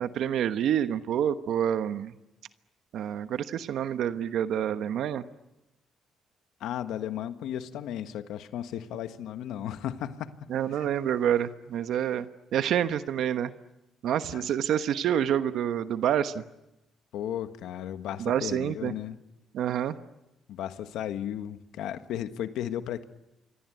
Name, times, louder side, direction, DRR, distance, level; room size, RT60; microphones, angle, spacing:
voice 1, 0.0-2.1 2.9-5.2 10.5-13.5 14.0-16.4 18.2-18.9 19.5-19.9, right 9 dB, 75° right, 10 dB, 1.1 m, -28 dB
voice 2, 6.6-10.9 14.3-14.5 17.1-19.2 20.5-23.0, left 10 dB, 85° left, 10 dB, 1.5 m, -35 dB
27.5 x 23.0 x 9.3 m, 0.96 s
cardioid pair, 90°, 0 cm